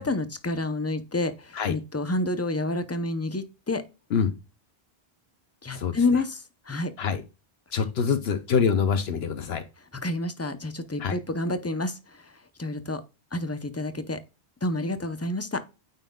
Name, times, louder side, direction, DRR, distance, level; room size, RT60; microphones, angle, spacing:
voice 1, 0.0-3.8 5.6-6.9 7.8-7.9 10.0-13.0 13.3-14.2 14.6-15.6, left 2 dB, 15° left, 0.6 m, -29 dB
voice 2, 7.7-9.6 11.0-11.1, left 6 dB, 75° left, 1.0 m, -25 dB
9.0 x 5.6 x 2.3 m
omnidirectional pair, 1.1 m